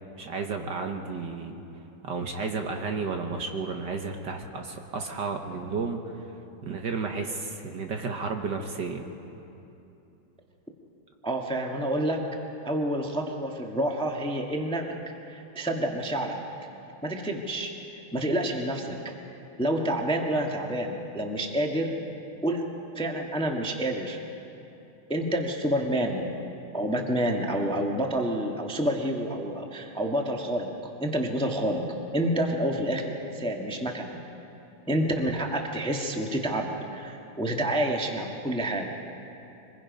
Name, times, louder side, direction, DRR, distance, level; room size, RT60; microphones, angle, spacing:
voice 1, 0.2-1.6 2.0-6.3 6.6-9.1, right 4 dB, 60° right, 4 dB, 1.6 m, -32 dB
voice 2, 11.2-12.2 12.6-14.8 15.3-16.4 17.0-17.7 18.1-19.0 19.6-22.0 22.4-22.6 22.9-24.2 25.1-26.3 26.7-30.7 31.0-31.8 32.1-34.2 34.9-38.9, right 1 dB, 5° left, 1 dB, 1.1 m, -28 dB
25.5 x 21.5 x 5.3 m, 2.9 s
omnidirectional pair, 2.4 m